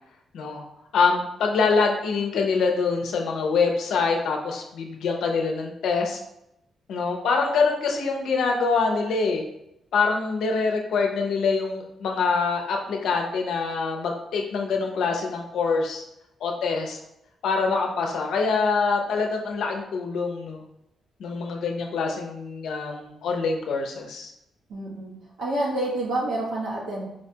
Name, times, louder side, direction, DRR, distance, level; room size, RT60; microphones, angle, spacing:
voice 1, 0.3-0.6 0.9-6.2 6.9-9.4 9.9-16.0 16.4-17.0 17.4-20.6 21.2-24.3, left 4 dB, 70° left, 2 dB, 0.5 m, -25 dB
voice 2, 24.7-25.1 25.4-27.1, right 1 dB, 75° right, -4 dB, 1.1 m, -28 dB
4.5 x 2.2 x 2.7 m, 0.82 s
wide cardioid pair, 175°, 0 cm